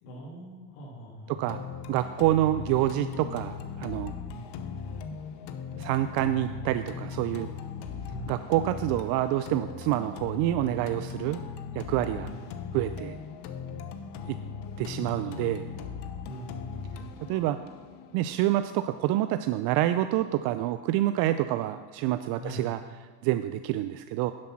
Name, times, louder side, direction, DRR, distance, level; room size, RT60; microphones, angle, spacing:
voice 1, 0.0-1.6 2.6-2.7 4.3-4.4 8.1-8.3 12.2-12.4 12.7-12.8 16.2-17.2 22.4-22.6, right 1 dB, 75° left, -4 dB, 2.6 m, -43 dB
voice 2, 1.3-1.6 1.9-4.1 5.8-7.5 8.3-11.4 11.7-12.3 12.7-13.2 14.2-14.4 14.8-15.7 17.3-17.6 18.1-22.8 23.2-24.3, right 14 dB, 50° right, 11 dB, 0.5 m, -27 dB
sound 1, 1.5-19.5, left 6 dB, 55° left, 1.0 m, -39 dB
10.5 x 7.5 x 5.8 m, 1.5 s
supercardioid pair, 115°, 48 cm